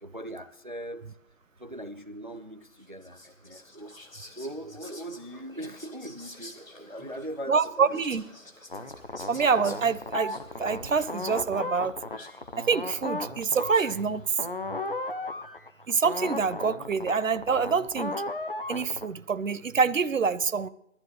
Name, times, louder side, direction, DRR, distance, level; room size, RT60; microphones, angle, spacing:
voice 1, 0.0-1.1 1.6-3.9 4.3-8.0, right 1 dB, 40° right, 12 dB, 0.4 m, -40 dB
Whispering, 2.7-14.1, left 2 dB, 90° left, 2.0 m, -50 dB
voice 2, 7.5-8.2 9.3-11.9 12.6-14.2 15.9-18.2 18.7-20.7, right 5 dB, 75° right, 16 dB, 0.7 m, -26 dB
sound 1, 8.7-19.1, left 2 dB, 45° left, 0.6 m, -36 dB
18.5 x 13.5 x 3.1 m, 0.78 s
figure-of-eight pair, 160°, 39 cm